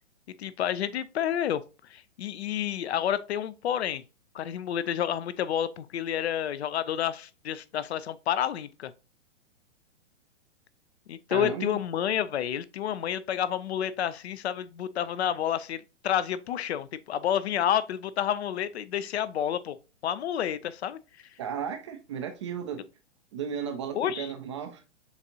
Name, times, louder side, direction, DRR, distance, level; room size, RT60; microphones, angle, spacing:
voice 1, 0.4-1.6 1.9-4.0 4.3-8.9 11.1-19.8 20.0-21.0 23.9-24.3, left 10 dB, 60° left, 0.5 m, -29 dB
voice 2, 11.3-11.8 21.4-22.8 23.3-24.8, right 7 dB, 25° right, 0.4 m, -34 dB
6.9 x 2.5 x 2.7 m
figure-of-eight pair, 120°, 36 cm